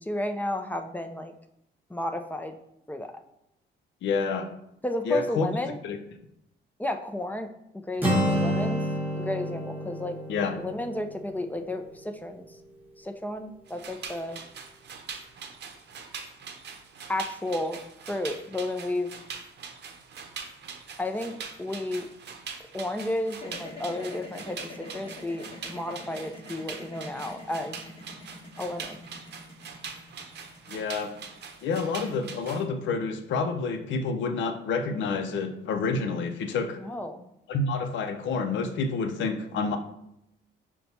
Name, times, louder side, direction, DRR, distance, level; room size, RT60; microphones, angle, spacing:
voice 1, 0.0-1.3 1.9-2.5 2.9-3.1 4.8-5.8 6.8-7.5 7.9-8.8 9.1-10.2 10.6-12.5 13.0-14.4 17.1-17.8 18.1-19.1 21.0-22.1 22.7-27.8 28.6-29.1 36.8-37.3, left 1 dB, 10° left, 6 dB, 0.4 m, -32 dB
voice 2, 4.0-4.5 5.1-5.5 5.8-6.0 10.3-10.6 30.7-31.1 31.6-36.8 37.5-39.8, left 4 dB, 70° left, 6 dB, 0.5 m, -28 dB
Acoustic guitar, 8.0-11.9, equal, 10° right, 1.0 m, -29 dB
sound 1, 13.7-32.6, right 6 dB, 60° right, 0.7 m, -43 dB
sound 2, 23.3-33.5, left 2 dB, 30° left, 1.1 m, -45 dB
5.6 x 2.2 x 4.1 m, 0.80 s
cardioid pair, 90°, 20 cm